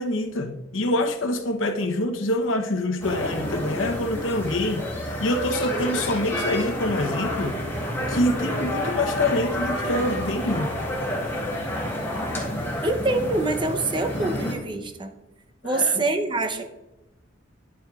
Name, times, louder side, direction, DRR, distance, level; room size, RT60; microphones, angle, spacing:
voice 1, 0.0-7.6 8.1-10.7 15.6-16.0, left 1 dB, 90° left, 0.8 m, -26 dB
sound 1, 3.0-14.5, left 1 dB, 15° left, 2.0 m, -29 dB
voice 2, 12.8-15.1 15.6-16.6, right 2 dB, 25° right, 0.6 m, -25 dB
10.5 x 8.5 x 2.4 m
head